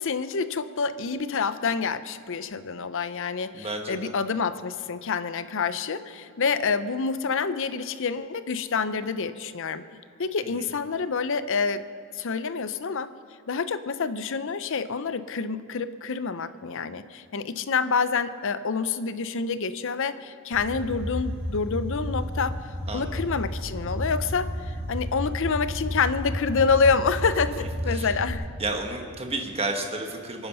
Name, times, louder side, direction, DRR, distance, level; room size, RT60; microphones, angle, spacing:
voice 1, 0.0-9.8 10.2-11.8 12.1-13.1 13.5-22.5 22.9-28.5, left 5 dB, 60° left, 13 dB, 0.6 m, -27 dB
voice 2, 3.5-4.1 10.4-10.7 22.9-23.2 27.6-28.1 28.6-30.5, right 2 dB, 25° right, 3 dB, 1.5 m, -32 dB
sound 1, 20.5-28.3, equal, 60° right, 4.1 m, -32 dB
24.0 x 9.7 x 5.6 m, 2.2 s
head